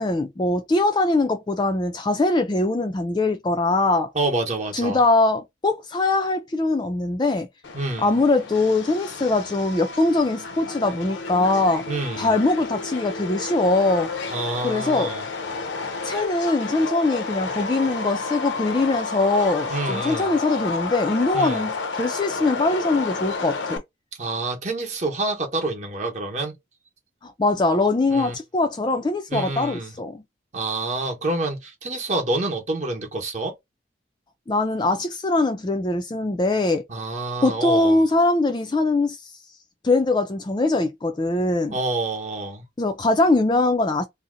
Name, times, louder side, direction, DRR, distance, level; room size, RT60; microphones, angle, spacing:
voice 1, 0.0-4.1 4.7-7.5 8.0-11.9 12.2-14.1 14.6-15.1 16.0-23.8 27.2-30.2 34.5-36.9 37.4-39.3 39.8-41.7 42.8-44.1, left 2 dB, 25° left, 0.3 m, -22 dB
voice 2, 4.1-5.0 7.7-8.1 11.9-12.4 14.3-15.2 19.7-20.3 21.3-21.6 24.2-26.5 28.1-28.3 29.3-29.9 30.5-33.5 36.9-38.0 41.7-42.6, right 2 dB, 35° right, 0.8 m, -27 dB
Subway metro underground, 7.6-23.8, left 4 dB, 75° left, 0.6 m, -31 dB
2.7 x 2.1 x 3.7 m
head